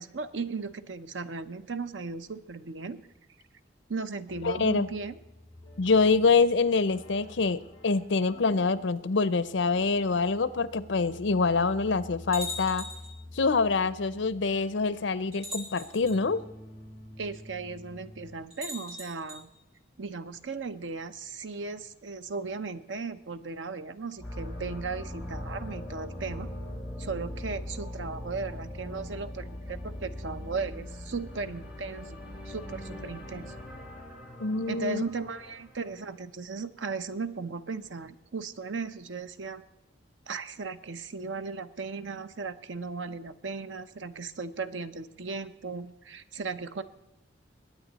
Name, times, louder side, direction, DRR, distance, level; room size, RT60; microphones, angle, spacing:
voice 1, 0.0-3.0 3.9-5.2 17.2-19.5 20.0-26.5 27.0-32.2 32.5-33.5 34.7-39.6 40.3-46.8, right 4 dB, 90° right, 11 dB, 0.8 m, -36 dB
sound 1, 4.3-18.4, left 1 dB, 25° left, 3.4 m, -49 dB
voice 2, 4.4-4.9 5.8-12.8 13.3-16.4 34.4-35.0, left 4 dB, 80° left, 17 dB, 0.7 m, -25 dB
sound 2, 12.3-13.2 14.3-14.4 15.3-16.2 18.5-19.4, left 1 dB, 35° right, 5.6 m, -40 dB
sound 3, 24.2-36.1, left 1 dB, 5° right, 3.6 m, -40 dB
21.5 x 9.1 x 4.1 m, 0.97 s
head